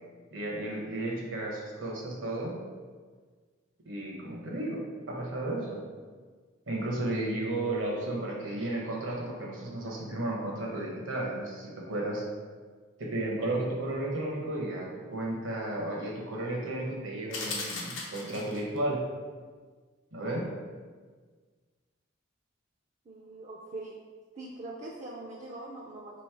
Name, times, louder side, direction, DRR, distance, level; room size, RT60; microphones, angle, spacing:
voice 1, 0.3-2.6 3.8-4.8 5.1-5.8 6.7-12.2 13.0-19.0 20.1-20.5, right 1 dB, 75° right, -2 dB, 1.0 m, -33 dB
sound 1, 17.3-18.8, left 3 dB, 80° left, 0.8 m, -37 dB
voice 2, 23.1-24.0 24.3-26.2, right 2 dB, 35° right, -3 dB, 0.3 m, -42 dB
3.1 x 3.1 x 4.6 m, 1.5 s
head